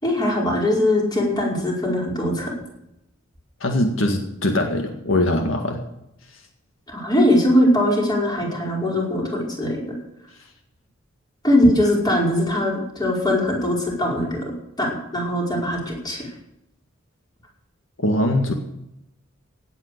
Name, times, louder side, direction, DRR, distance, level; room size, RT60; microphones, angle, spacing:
voice 1, 0.0-2.5 6.9-9.8 11.4-14.5 14.8-16.2, left 1 dB, 20° left, -2 dB, 5.1 m, -21 dB
voice 2, 3.6-5.8 18.0-18.5, left 1 dB, 70° left, 3 dB, 1.9 m, -21 dB
17.0 x 9.2 x 6.8 m, 0.83 s
head